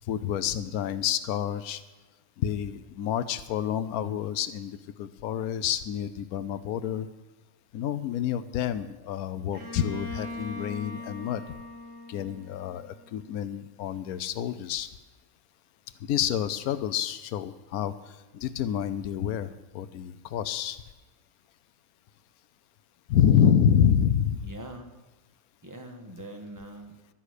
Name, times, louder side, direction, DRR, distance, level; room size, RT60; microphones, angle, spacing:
voice 1, 0.1-1.8 2.4-7.1 7.7-11.4 12.1-14.9 16.1-17.9 18.3-20.8 23.1-24.4, left 9 dB, 85° left, 13 dB, 1.1 m, -28 dB
Bowed string instrument, 9.5-13.3, left 1 dB, 70° right, 4.2 m, -40 dB
voice 2, 24.4-25.0 25.6-27.1, right 1 dB, 15° right, 4 dB, 1.3 m, -43 dB
12.0 x 9.8 x 6.6 m, 1.2 s
omnidirectional pair, 1.5 m